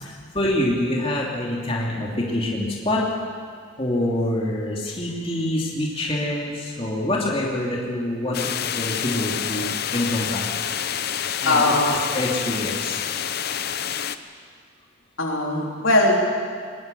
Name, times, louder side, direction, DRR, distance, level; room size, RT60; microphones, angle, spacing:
voice 1, 0.0-3.0 3.8-10.6 11.4-11.8 12.1-13.0, left 1 dB, 25° left, -4 dB, 3.0 m, -26 dB
sound 1, 8.3-14.2, left 8 dB, 50° left, 0.8 m, -28 dB
voice 2, 11.5-12.0 15.2-16.2, left 2 dB, 75° left, -1 dB, 3.8 m, -20 dB
21.5 x 20.5 x 7.0 m, 2.1 s
head